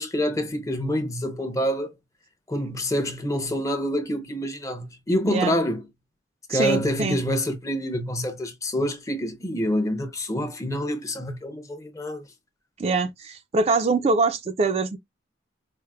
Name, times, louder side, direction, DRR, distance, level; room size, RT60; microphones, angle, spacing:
voice 1, 0.0-2.0 2.5-5.8 6.5-12.3, equal, 15° left, 0.5 m, -27 dB
voice 2, 6.5-7.2 12.8-15.0, right 3 dB, 35° right, 0.3 m, -23 dB
4.4 x 2.0 x 2.3 m
head